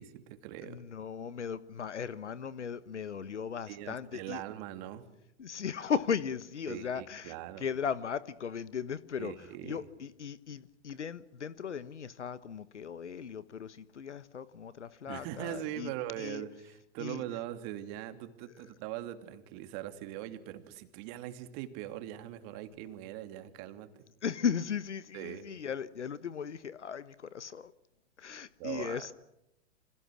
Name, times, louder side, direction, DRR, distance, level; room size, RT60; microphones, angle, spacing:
voice 1, 0.0-0.8 3.7-5.1 6.7-7.7 9.2-9.9 15.1-24.0 25.1-25.5 28.6-29.1, right 12 dB, 40° right, 2.8 m, -41 dB
voice 2, 0.6-4.4 5.4-9.3 9.6-15.9 16.2-16.4 17.0-17.2 24.2-27.7 28.2-29.1, left 7 dB, 75° left, 1.4 m, -37 dB
29.5 x 26.0 x 6.3 m
figure-of-eight pair, 105°, 35 cm